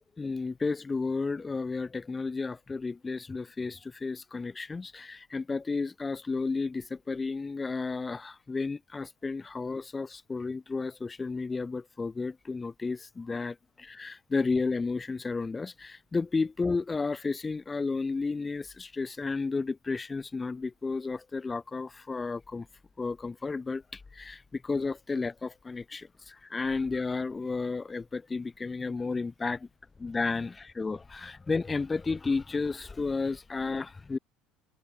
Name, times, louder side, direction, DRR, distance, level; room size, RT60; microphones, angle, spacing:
voice 1, 0.2-22.7 23.0-29.7 30.0-34.2, left 4 dB, 20° left, 4.8 m, -32 dB
open air
supercardioid pair, 85°, 0 cm